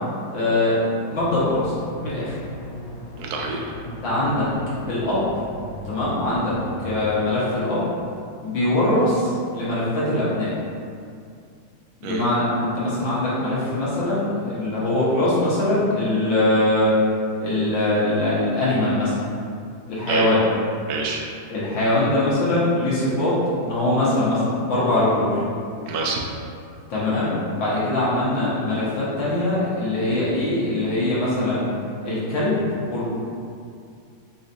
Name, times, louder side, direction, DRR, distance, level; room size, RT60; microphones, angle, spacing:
voice 1, 0.3-0.8 1.1-1.8 2.0-2.3 3.9-4.5 4.9-5.4 5.9-6.5 6.8-7.9 8.4-10.5 12.0-16.9 17.4-19.2 19.9-20.4 21.5-25.4 26.9-31.6 32.0-32.6 32.9-33.1, left 1 dB, 70° left, -10 dB, 2.0 m, -22 dB
sound 1, 1.1-7.2, left 1 dB, 55° left, 0.7 m, -37 dB
voice 2, 3.2-3.7 12.0-12.2 20.1-20.3 20.9-21.2 25.8-26.2, right 3 dB, 75° right, -1 dB, 0.9 m, -27 dB
4.8 x 3.1 x 2.7 m, 2.4 s
omnidirectional pair, 2.1 m